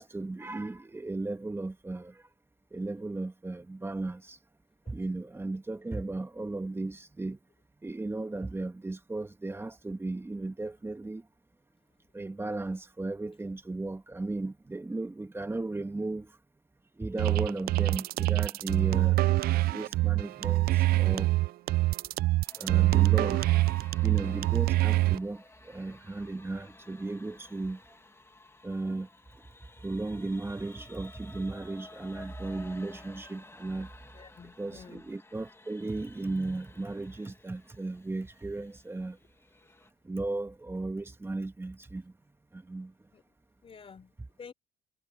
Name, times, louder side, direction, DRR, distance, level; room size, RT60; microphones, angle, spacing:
voice 1, 0.0-2.3 2.7-4.4 4.9-7.4 7.8-11.3 12.1-16.4 17.0-19.2 19.7-21.3 22.5-23.4 24.0-27.8 28.6-29.4 29.8-33.9 34.6-39.2 40.0-42.1 42.5-42.9, right 2 dB, 15° right, 1.7 m, -35 dB
sound 1, 17.2-25.2, right 18 dB, 65° right, 0.4 m, -25 dB
sound 2, 22.5-39.9, left 2 dB, 15° left, 2.4 m, -54 dB
voice 2, 34.1-35.1 43.1-43.3 43.6-44.5, left 6 dB, 35° left, 3.7 m, -51 dB
cardioid pair, 110°, 17 cm